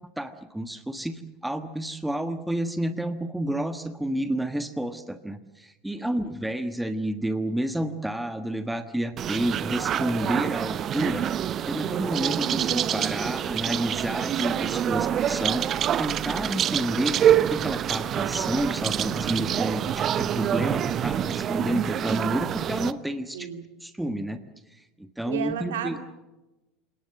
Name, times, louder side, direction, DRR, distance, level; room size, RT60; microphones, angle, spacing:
voice 1, 0.2-23.5 23.8-24.4 24.7-26.0, right 1 dB, 5° right, 10 dB, 1.4 m, -30 dB
voice 2, 6.0-6.3 23.3-23.7 25.2-26.0, right 8 dB, 65° right, 6 dB, 3.1 m, -34 dB
sound 1, 9.2-22.9, right 9 dB, 35° right, 0.8 m, -26 dB
28.0 x 18.5 x 7.7 m, 1.0 s
figure-of-eight pair, 75°, 0 cm